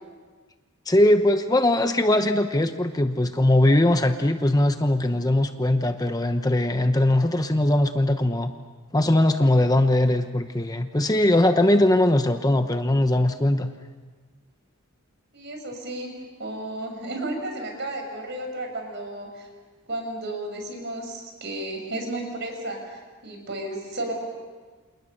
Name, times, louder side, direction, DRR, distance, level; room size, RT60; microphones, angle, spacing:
voice 1, 0.9-8.5 8.9-13.7, left 1 dB, 15° left, 7 dB, 0.9 m, -20 dB
voice 2, 15.3-16.1 16.4-19.5 19.9-24.2, right 1 dB, 55° right, 3 dB, 6.4 m, -33 dB
29.0 x 28.0 x 6.6 m, 1.4 s
head